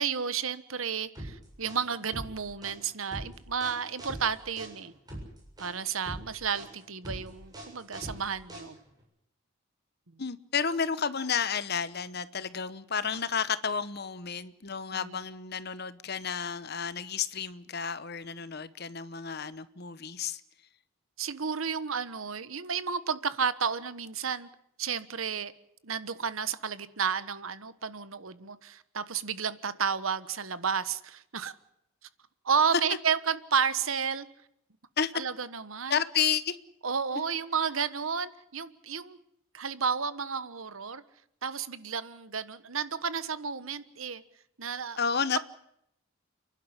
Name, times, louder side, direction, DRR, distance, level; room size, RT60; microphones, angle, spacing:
voice 1, 0.0-4.9 5.6-8.8 14.9-15.2 21.2-24.5 24.8-25.5 25.8-31.5 32.4-34.3 35.1-36.0 36.8-39.2 39.5-41.0 41.4-44.2 44.6-45.0, right 6 dB, 80° right, 1.3 m, -32 dB
sound 1, 1.2-9.0, right 1 dB, 20° right, 7.8 m, -42 dB
voice 2, 10.2-20.4 35.0-35.1 35.9-36.6 37.1-37.2 45.0-45.4, left 6 dB, 50° left, 1.0 m, -31 dB
29.5 x 11.5 x 9.9 m
head